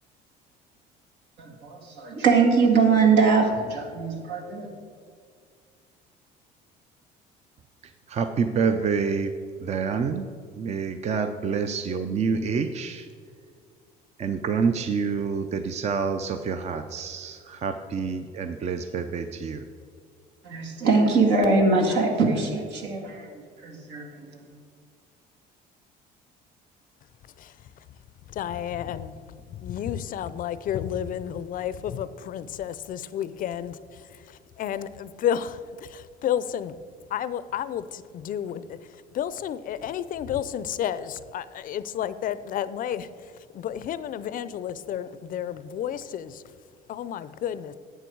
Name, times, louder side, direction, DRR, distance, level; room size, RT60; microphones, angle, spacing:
voice 1, 1.4-4.7 20.4-24.4, right 4 dB, 75° right, 1 dB, 2.0 m, -22 dB
voice 2, 8.1-9.3 9.6-10.3 10.6-13.1 14.2-19.6, right 5 dB, 40° right, 8 dB, 0.6 m, -27 dB
voice 3, 28.3-33.8 34.3-36.7 37.1-38.8 39.1-43.1 43.5-46.4 46.9-47.7, left 10 dB, 50° left, 15 dB, 0.5 m, -31 dB
11.5 x 8.0 x 4.6 m, 2.1 s
cardioid pair, 110°, 18 cm